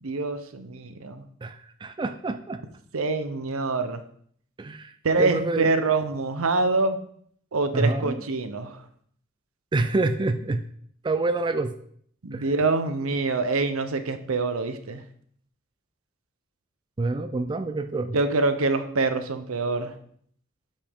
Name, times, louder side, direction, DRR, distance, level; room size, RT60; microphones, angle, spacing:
voice 1, 0.0-1.3 2.9-4.0 5.0-7.0 7.5-8.8 12.2-15.0 18.1-19.9, right 3 dB, 80° right, 9 dB, 0.8 m, -25 dB
voice 2, 1.4-2.6 4.6-5.7 7.7-8.2 9.7-10.6 11.0-11.7 12.3-12.5 17.0-18.2, right 3 dB, 20° right, 8 dB, 0.4 m, -27 dB
8.5 x 5.4 x 3.6 m, 0.62 s
head